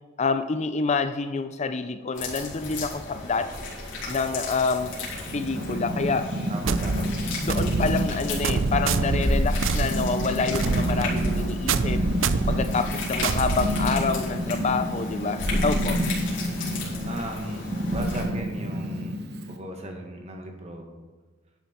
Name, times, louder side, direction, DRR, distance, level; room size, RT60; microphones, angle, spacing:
voice 1, 0.2-3.5 4.1-4.9 5.3-6.3 7.4-12.0 12.5-16.0, left 4 dB, 35° left, 10 dB, 0.5 m, -27 dB
sound 1, 2.2-18.2, left 1 dB, 75° left, 3.6 m, -33 dB
Purr, 4.8-19.6, equal, 55° right, 1.1 m, -30 dB
voice 2, 6.5-7.1 10.7-11.5 17.0-19.2 19.5-20.9, right 1 dB, 35° right, 3 dB, 1.6 m, -37 dB
sound 2, 6.6-14.3, right 4 dB, 80° right, 0.5 m, -27 dB
11.0 x 8.9 x 4.4 m, 1.3 s
head